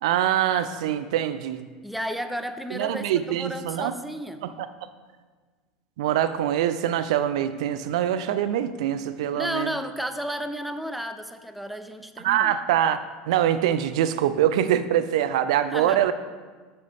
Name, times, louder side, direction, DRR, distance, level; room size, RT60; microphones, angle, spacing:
voice 1, 0.0-1.6 2.7-3.9 4.4-4.7 6.0-9.7 12.2-13.0 13.3-16.1, right 11 dB, 75° right, 12 dB, 0.4 m, -24 dB
voice 2, 1.8-4.5 9.3-12.5 15.7-16.1, equal, ahead, 9 dB, 0.5 m, -33 dB
7.3 x 6.8 x 3.5 m, 1.4 s
hypercardioid pair, 95°, 3 cm